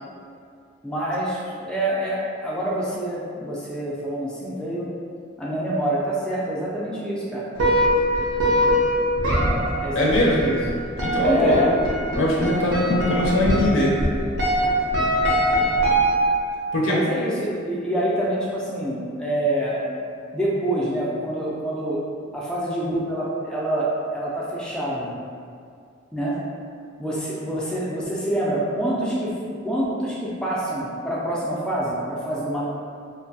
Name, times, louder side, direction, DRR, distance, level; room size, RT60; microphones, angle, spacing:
voice 1, 0.8-4.9 5.4-7.5 9.8-10.6 11.2-11.7 16.8-19.8 20.3-22.0 22.3-25.1 26.1-26.4 27.0-29.3 29.6-32.6, right 1 dB, 5° left, -7 dB, 0.3 m, -26 dB
sound 1, 7.6-16.5, equal, 75° right, 0.6 m, -22 dB
voice 2, 9.9-10.6 11.0-11.7 12.1-14.0 16.7-17.1, left 1 dB, 75° left, -4 dB, 0.5 m, -21 dB
2.6 x 2.2 x 2.6 m, 2.3 s
head